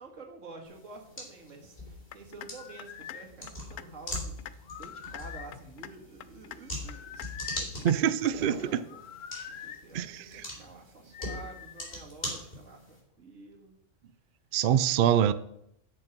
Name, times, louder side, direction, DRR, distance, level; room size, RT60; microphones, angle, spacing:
voice 1, 0.0-9.0 9.5-13.8, right 3 dB, 80° right, 2.1 m, -49 dB
sound 1, 0.6-13.0, left 1 dB, 45° left, 3.7 m, -42 dB
sound 2, 2.1-2.5 2.8-3.2 3.5-3.8 4.1-4.5 4.8-5.2 5.5-5.9 6.2-6.6 6.9-7.3 7.6-7.9 8.2-8.3, left 11 dB, 65° left, 0.8 m, -43 dB
sound 3, 2.4-3.3 4.6-5.5 6.8-7.7 8.9-9.8 11.1-12.0, left 8 dB, 85° left, 1.1 m, -44 dB
voice 2, 7.8-8.8 9.9-10.5 14.5-15.3, right 9 dB, 60° right, 0.5 m, -25 dB
9.3 x 6.4 x 5.9 m
omnidirectional pair, 1.3 m